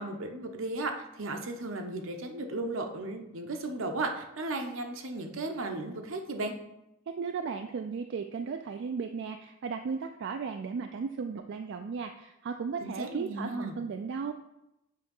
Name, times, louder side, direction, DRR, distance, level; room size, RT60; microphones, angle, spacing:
voice 1, 0.0-6.6 12.8-13.8, right 2 dB, 80° right, 4 dB, 0.8 m, -35 dB
voice 2, 7.1-14.3, right 5 dB, 60° right, 6 dB, 0.3 m, -35 dB
7.4 x 2.9 x 5.3 m, 0.88 s
head